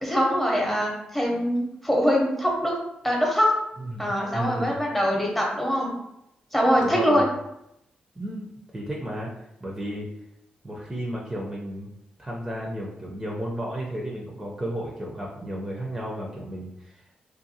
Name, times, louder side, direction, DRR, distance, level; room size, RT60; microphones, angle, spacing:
voice 1, 0.0-2.7 3.0-3.5 4.0-6.0 6.5-7.2, equal, 5° left, -1 dB, 0.9 m, -23 dB
voice 2, 3.8-4.7 6.8-7.3 8.2-9.3 9.6-10.1 10.6-11.9 12.2-17.2, equal, 20° right, -3 dB, 0.6 m, -33 dB
2.6 x 2.3 x 2.7 m, 0.81 s
cardioid pair, 60°, 3 cm